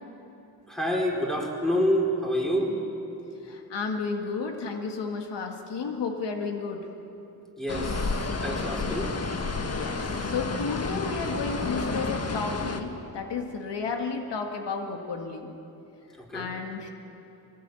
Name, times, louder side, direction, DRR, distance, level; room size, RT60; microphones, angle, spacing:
voice 1, 0.7-2.7 7.6-9.1 16.2-16.5, equal, ahead, -1 dB, 4.4 m, -28 dB
voice 2, 3.4-6.9 9.6-15.5 16.3-16.9, left 4 dB, 85° left, 3 dB, 2.0 m, -32 dB
sound 1, 7.7-12.8, left 3 dB, 35° left, 1.6 m, -30 dB
22.0 x 18.0 x 9.1 m, 2.9 s
cardioid pair, 80°, 41 cm